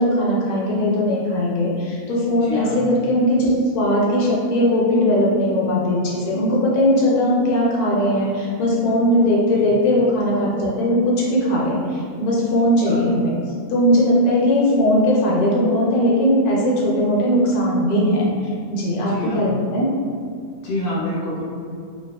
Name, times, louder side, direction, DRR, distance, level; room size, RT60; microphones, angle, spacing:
voice 1, 0.0-13.3 13.7-18.3 18.7-19.9, equal, 85° left, -5 dB, 1.1 m, -19 dB
voice 2, 2.4-2.8 9.5-9.6 12.9-13.0 19.1-19.4 20.6-21.4, left 2 dB, 55° left, -7 dB, 1.0 m, -27 dB
2.8 x 2.2 x 2.3 m, 2.2 s
omnidirectional pair, 1.6 m